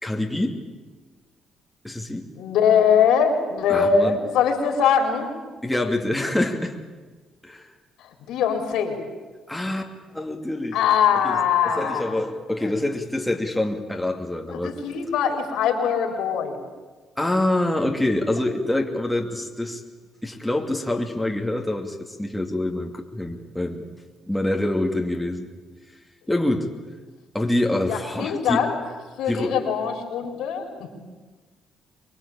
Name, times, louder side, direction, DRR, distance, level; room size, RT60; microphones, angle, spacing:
voice 1, 0.0-0.6 1.8-2.3 3.7-4.2 5.6-6.8 7.4-7.7 9.5-10.8 11.2-11.4 11.6-14.8 17.2-19.8 20.2-23.8 24.3-25.5 26.3-26.7 27.3-28.6 29.3-29.6, left 1 dB, 5° left, 1 dB, 2.5 m, -26 dB
voice 2, 2.4-5.3 8.3-9.0 10.7-12.2 12.6-12.7 14.5-16.6 27.9-28.8 29.2-30.9, left 7 dB, 85° left, 4 dB, 4.3 m, -22 dB
24.0 x 21.5 x 8.8 m, 1.3 s
cardioid pair, 95°, 0 cm